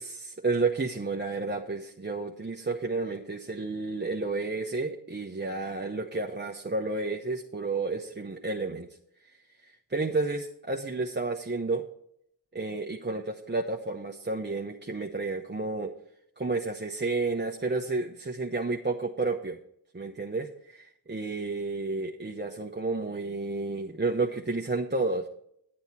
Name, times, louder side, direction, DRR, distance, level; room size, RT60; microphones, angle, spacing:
voice 1, 0.0-8.9 9.9-11.8 12.5-15.9 16.4-19.6 19.9-20.8 21.1-25.3, right 3 dB, 25° right, 1 dB, 1.0 m, -31 dB
9.7 x 8.8 x 4.3 m, 0.71 s
cardioid pair, 55°, 40 cm